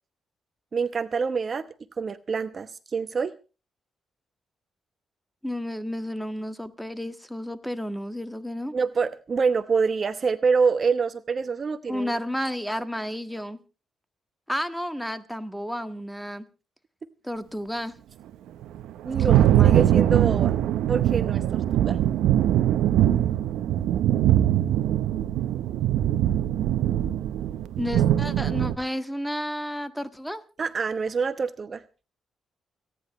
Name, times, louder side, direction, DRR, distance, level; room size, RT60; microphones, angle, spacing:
voice 1, 0.7-1.6 2.0-3.3 8.7-12.2 19.0-20.5 20.9-22.0 30.6-31.8, right 5 dB, 50° right, 13 dB, 0.8 m, -26 dB
voice 2, 5.4-8.7 11.9-13.6 14.5-16.4 17.2-17.9 19.2-20.0 27.0-27.1 27.8-30.4, equal, 5° left, 11 dB, 1.6 m, -32 dB
Thunder, 18.6-28.8, right 12 dB, 85° right, 0.8 m, -22 dB
29.5 x 10.0 x 3.1 m, 0.33 s
supercardioid pair, 60°, 0 cm